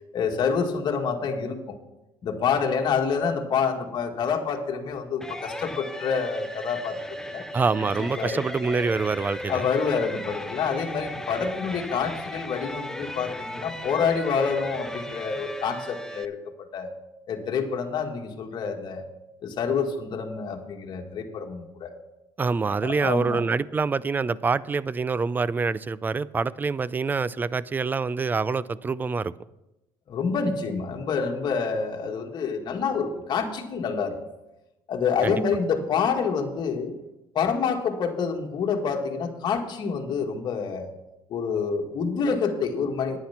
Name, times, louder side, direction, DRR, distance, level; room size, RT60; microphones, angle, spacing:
voice 1, 0.1-1.8 2.2-7.5 8.0-8.4 9.5-16.4 16.7-16.9 17.3-19.1 19.4-21.9 22.8-23.4 30.1-34.2 34.9-37.0 37.3-40.9 41.3-43.2, left 6 dB, 50° left, 3 dB, 1.8 m, -27 dB
sound 1, 5.2-16.2, left 1 dB, 5° left, 0.7 m, -36 dB
voice 2, 7.5-9.6 22.4-29.3 35.2-35.4, right 4 dB, 20° right, 19 dB, 0.4 m, -26 dB
10.0 x 9.7 x 5.9 m, 0.95 s
cardioid pair, 105°, 9 cm